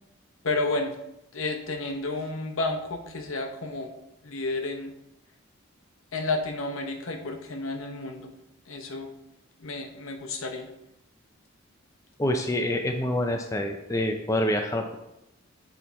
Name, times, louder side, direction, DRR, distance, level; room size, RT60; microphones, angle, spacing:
voice 1, 0.4-0.9 1.3-3.9 4.2-4.9 6.1-8.3 8.7-9.1 9.6-10.7, left 2 dB, 70° left, 4 dB, 0.9 m, -31 dB
voice 2, 12.2-15.0, left 1 dB, 15° left, 3 dB, 0.4 m, -27 dB
8.3 x 4.4 x 4.1 m, 0.87 s
head